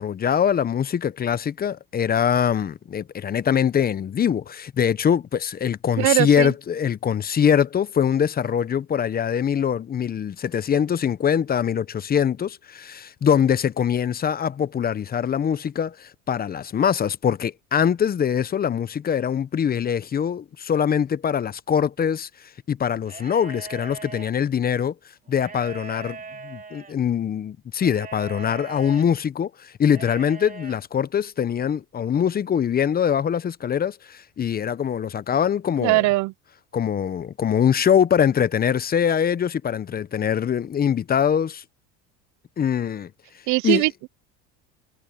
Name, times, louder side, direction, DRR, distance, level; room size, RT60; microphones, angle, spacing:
voice 1, 0.0-22.3 22.7-24.9 25.3-26.2 26.4-36.0 36.7-41.6 42.6-43.1 43.6-43.8, left 8 dB, 25° left, 0.8 m, -23 dB
voice 2, 6.0-6.5 35.8-36.3 43.5-44.1, right 22 dB, 60° right, 0.6 m, -20 dB
sound 1, 23.0-24.3 25.3-26.9 27.8-29.1 29.9-30.8, right 4 dB, 25° right, 3.0 m, -40 dB
supercardioid pair, 105°, 34 cm